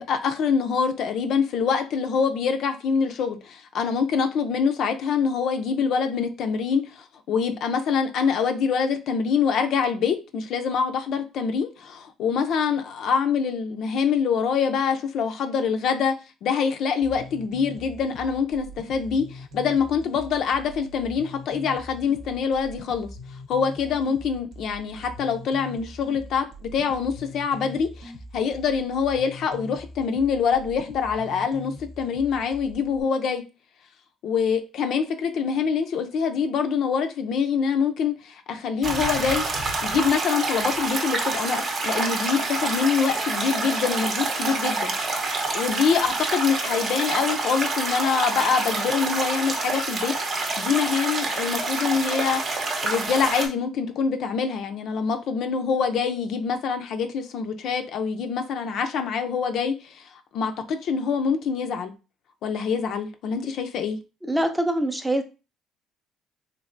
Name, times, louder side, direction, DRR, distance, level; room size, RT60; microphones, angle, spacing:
voice 1, 0.0-16.2 16.4-23.1 23.5-33.4 34.2-39.5 39.8-44.9 45.5-60.0 60.3-61.9 62.4-64.0, left 6 dB, 65° left, 0.4 m, -25 dB
sound 1, 17.0-33.0, equal, 75° right, 0.9 m, -42 dB
sound 2, 38.8-53.5, right 3 dB, 45° right, 0.7 m, -27 dB
voice 2, 64.2-65.2, right 1 dB, 10° right, 0.5 m, -24 dB
3.2 x 2.8 x 2.5 m
cardioid pair, 100°, 0 cm